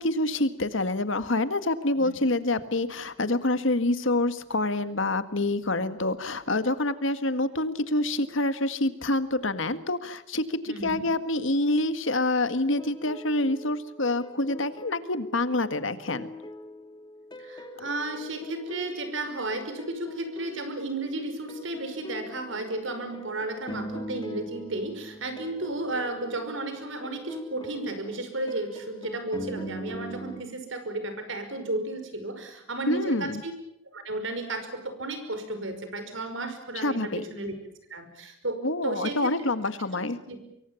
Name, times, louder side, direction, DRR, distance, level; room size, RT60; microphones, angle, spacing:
voice 1, 0.0-16.3 32.9-33.4 36.8-37.2 38.6-40.2, left 2 dB, 70° left, 11 dB, 1.8 m, -27 dB
voice 2, 10.7-11.0 17.4-33.5 33.8-37.5 37.9-39.3 40.3-40.4, right 2 dB, 65° right, 8 dB, 5.5 m, -33 dB
sound 1, 12.5-30.4, equal, 20° left, 2.4 m, -42 dB
25.5 x 23.5 x 7.2 m, 0.83 s
head